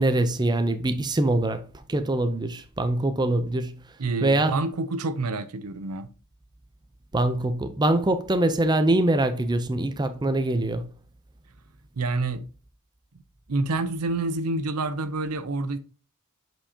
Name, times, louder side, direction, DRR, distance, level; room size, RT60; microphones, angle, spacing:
voice 1, 0.0-1.6 1.9-3.7 4.2-4.5 7.1-10.8, right 1 dB, 20° right, 0.5 m, -23 dB
voice 2, 4.0-6.1 12.0-12.5 13.5-15.8, right 3 dB, 90° right, 0.7 m, -28 dB
7.6 x 4.6 x 2.8 m
head